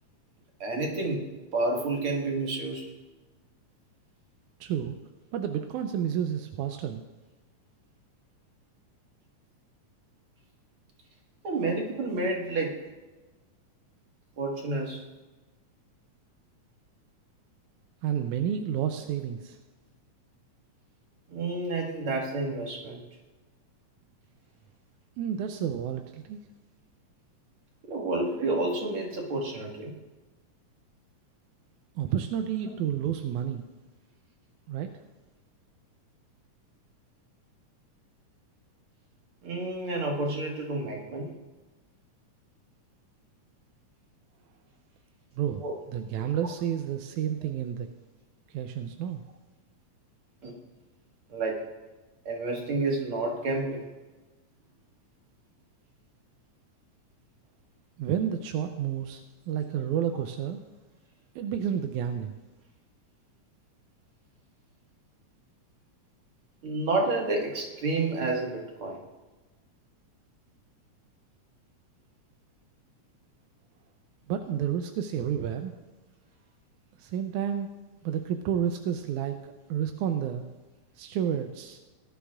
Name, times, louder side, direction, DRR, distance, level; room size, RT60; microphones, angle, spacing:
voice 1, 0.6-1.3 1.5-2.8 11.4-12.8 14.4-15.0 21.3-23.0 27.8-30.0 39.4-41.3 45.6-45.8 50.4-50.6 51.3-51.6 52.3-53.9 66.6-69.0, right 2 dB, 50° right, 0 dB, 2.3 m, -30 dB
voice 2, 4.6-5.0 5.3-7.0 18.0-19.6 25.2-26.4 32.0-33.7 34.7-34.9 45.4-47.9 48.5-49.3 58.0-60.6 61.4-62.4 74.3-75.7 77.0-77.7 78.0-79.4 79.7-80.5 81.0-81.8, right 9 dB, 90° right, 6 dB, 2.1 m, -30 dB
19.5 x 11.5 x 2.4 m, 1.2 s
omnidirectional pair, 3.5 m